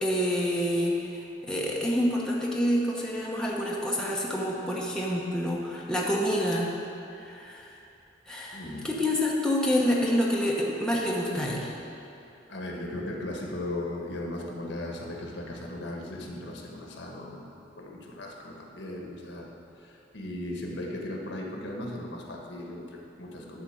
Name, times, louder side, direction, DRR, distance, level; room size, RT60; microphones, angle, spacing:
voice 1, 0.0-6.7 7.2-7.8 8.3-11.7, equal, 5° left, -4 dB, 0.9 m, -27 dB
voice 2, 8.5-8.9 12.5-17.5 17.7-19.5 19.8-23.6, left 1 dB, 70° left, -1 dB, 1.5 m, -37 dB
11.0 x 4.3 x 7.7 m, 2.8 s
head